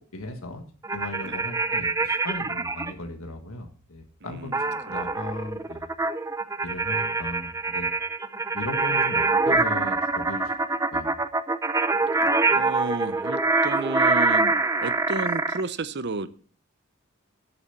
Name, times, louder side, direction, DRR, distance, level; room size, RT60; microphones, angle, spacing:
voice 1, 0.1-0.6 0.9-5.9 6.6-7.9 8.5-10.5 10.9-11.2, left 2 dB, 80° left, 4 dB, 1.6 m, -37 dB
sound 1, 0.8-2.9 4.5-15.6, right 3 dB, 15° right, 0.6 m, -25 dB
voice 2, 4.2-5.0 12.5-16.3, right 3 dB, 55° right, 14 dB, 0.8 m, -32 dB
12.0 x 7.1 x 5.8 m, 0.43 s
head